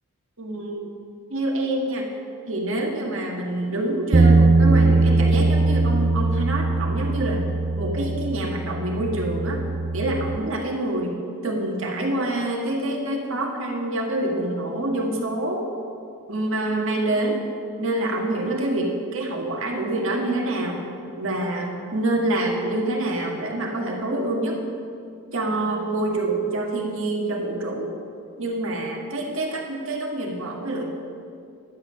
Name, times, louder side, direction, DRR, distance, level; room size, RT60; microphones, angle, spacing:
voice 1, 0.4-0.8 1.3-2.1 2.5-7.5 7.8-9.6 9.9-15.7 16.3-17.4 17.8-20.9 21.2-24.6 25.3-27.9 28.4-30.9, right 1 dB, 65° right, 0 dB, 1.7 m, -26 dB
Bass guitar, 4.1-10.4, right 3 dB, 35° right, 0.5 m, -20 dB
10.5 x 9.0 x 6.2 m, 2.4 s
head